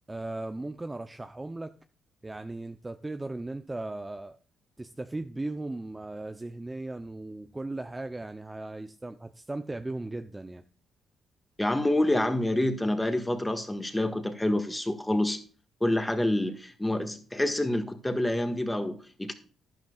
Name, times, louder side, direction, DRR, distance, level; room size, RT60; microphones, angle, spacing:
voice 1, 0.1-1.7 2.2-4.4 4.8-10.6, right 2 dB, 15° right, 0.6 m, -37 dB
voice 2, 11.6-15.4 15.8-19.3, left 1 dB, 10° left, 1.6 m, -27 dB
11.5 x 10.5 x 2.4 m
cardioid pair, 90°, 0 cm